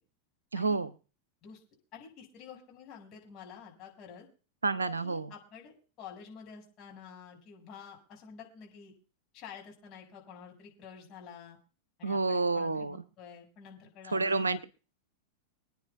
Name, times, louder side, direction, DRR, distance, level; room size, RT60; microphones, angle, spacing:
voice 1, 0.5-0.9 4.6-5.3 12.0-13.0 14.1-14.6, right 3 dB, 75° right, 16 dB, 0.7 m, -29 dB
voice 2, 1.9-4.3 5.0-8.9 9.3-11.6 12.0-14.6, left 7 dB, 35° left, -1 dB, 5.7 m, -49 dB
27.0 x 9.6 x 2.3 m, 0.36 s
figure-of-eight pair, 90°, 0 cm